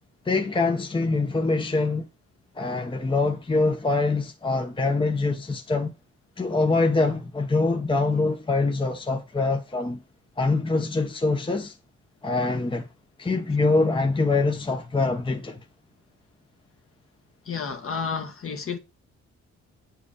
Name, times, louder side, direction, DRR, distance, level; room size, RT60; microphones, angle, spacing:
voice 1, 0.3-2.1 2.6-5.9 6.4-10.0 10.4-11.7 12.2-12.9 13.2-15.6, left 3 dB, 15° left, 0.9 m, -24 dB
voice 2, 17.4-18.8, left 6 dB, 45° left, 1.5 m, -31 dB
8.6 x 4.8 x 4.9 m
cardioid pair, 90°, 30 cm